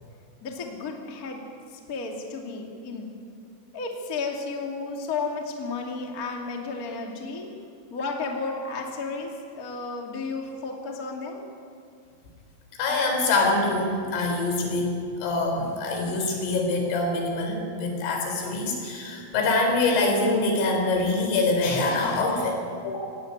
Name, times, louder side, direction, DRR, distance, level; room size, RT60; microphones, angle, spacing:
voice 1, 0.4-1.4 1.7-3.1 3.7-7.5 7.9-11.4, left 4 dB, 35° left, 1 dB, 1.5 m, -33 dB
voice 2, 12.8-22.6 22.8-23.0, left 2 dB, 80° left, 2 dB, 6.3 m, -25 dB
18.0 x 17.5 x 9.8 m, 2.4 s
omnidirectional pair, 5.7 m